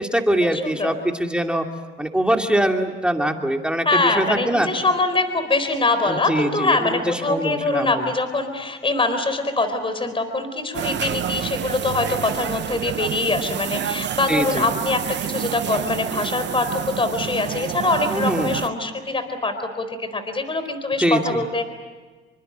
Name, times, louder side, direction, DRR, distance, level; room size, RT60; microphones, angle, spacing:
voice 1, 0.0-1.6 2.0-4.7 6.0-8.1 14.3-14.7 18.1-18.6 21.0-21.4, right 1 dB, 5° right, 3 dB, 2.6 m, -23 dB
voice 2, 0.5-0.9 3.9-21.6, left 3 dB, 25° left, 9 dB, 4.1 m, -23 dB
sound 1, 10.7-18.7, right 10 dB, 60° right, 0.9 m, -28 dB
27.5 x 25.0 x 8.1 m, 1.4 s
cardioid pair, 90°, 20 cm